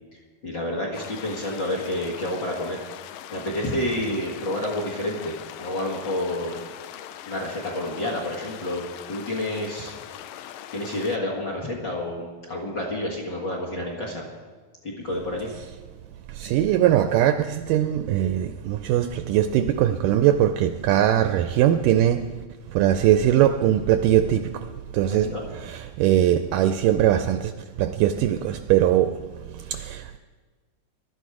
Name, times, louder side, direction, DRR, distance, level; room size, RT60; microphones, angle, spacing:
voice 1, 0.4-2.8 3.3-6.6 7.3-9.9 10.7-14.2 14.8-15.5 25.1-25.4, left 1 dB, 40° left, 1.8 m, -29 dB
sound 1, 0.9-11.2, left 11 dB, 80° left, 2.1 m, -41 dB
voice 2, 16.3-22.3 22.7-25.3 25.6-27.5 27.8-29.2 29.5-30.2, right 11 dB, 80° right, 1.9 m, -21 dB
18.0 x 12.0 x 4.9 m
omnidirectional pair, 4.2 m